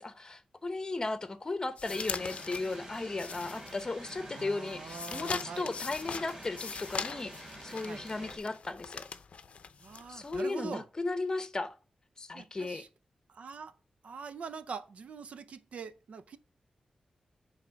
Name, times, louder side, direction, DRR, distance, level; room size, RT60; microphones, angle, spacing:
voice 1, 0.0-9.1 10.1-11.7 12.2-12.8, left 3 dB, 30° left, 0.8 m, -36 dB
sound 1, 1.8-4.1 4.5-10.4, left 5 dB, 65° left, 0.6 m, -41 dB
sound 2, 1.8-8.4, right 1 dB, 35° right, 2.7 m, -48 dB
voice 2, 4.3-5.7 7.8-8.0 9.8-10.8 12.3-12.9 13.3-13.7 14.0-16.4, right 5 dB, 75° right, 0.5 m, -43 dB
8.3 x 3.5 x 6.2 m
wide cardioid pair, 120°, 2 cm